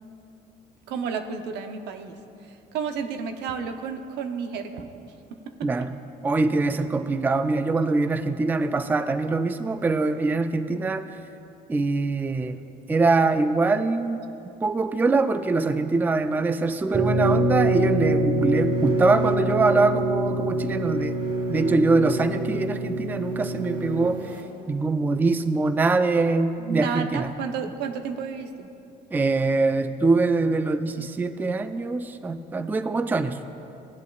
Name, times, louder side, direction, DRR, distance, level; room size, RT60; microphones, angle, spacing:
voice 1, 0.9-5.9 26.6-28.7, right 6 dB, 85° right, 6 dB, 0.7 m, -32 dB
voice 2, 6.2-11.1 11.7-12.6 12.9-14.2 14.6-21.2 21.5-24.2 24.7-27.3 29.1-33.4, right 3 dB, 10° right, 10 dB, 0.3 m, -23 dB
sound 1, 16.9-24.4, right 1 dB, 25° right, 1.1 m, -25 dB
17.0 x 8.3 x 2.4 m, 2.8 s
cardioid pair, 110°, 17 cm